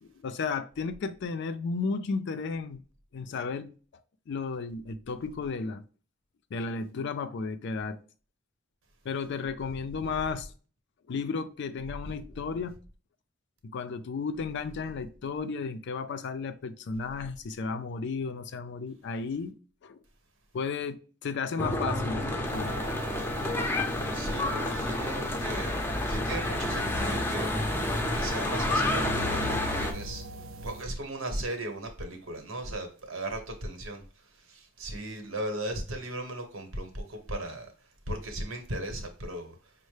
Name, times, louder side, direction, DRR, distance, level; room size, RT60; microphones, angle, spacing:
voice 1, 0.0-2.8 3.1-3.7 4.3-5.8 6.5-8.0 9.0-10.5 11.1-12.8 13.6-19.6 19.8-20.0 20.5-22.8, left 4 dB, 60° left, 0.4 m, -33 dB
Church bell / Traffic noise roadway noise, 21.6-29.9, left 1 dB, 10° left, 0.5 m, -29 dB
sound 1, 22.4-30.8, equal, 70° right, 0.4 m, -43 dB
voice 2, 24.1-30.2 30.6-39.7, right 1 dB, 85° right, 1.0 m, -37 dB
5.3 x 2.1 x 3.2 m
head